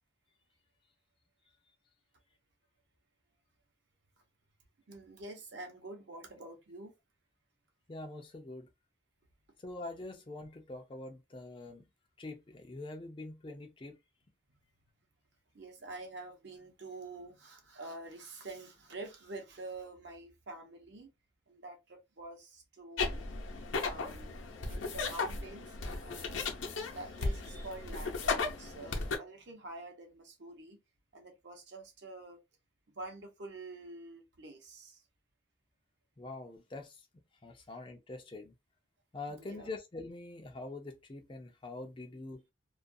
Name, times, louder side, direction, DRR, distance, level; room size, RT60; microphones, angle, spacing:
voice 1, 4.9-6.9 15.5-21.1 21.5-23.2 23.8-24.4 24.7-26.5 26.9-30.8 31.1-32.4 32.9-35.0 39.3-39.7, right 2 dB, 65° right, 0.8 m, -47 dB
voice 2, 7.9-8.7 9.6-11.8 12.2-13.9 36.2-37.1 37.4-38.5 39.1-42.4, left 2 dB, 25° left, 0.4 m, -44 dB
sound 1, 23.0-29.2, left 4 dB, 80° left, 0.6 m, -36 dB
2.3 x 2.3 x 2.5 m
head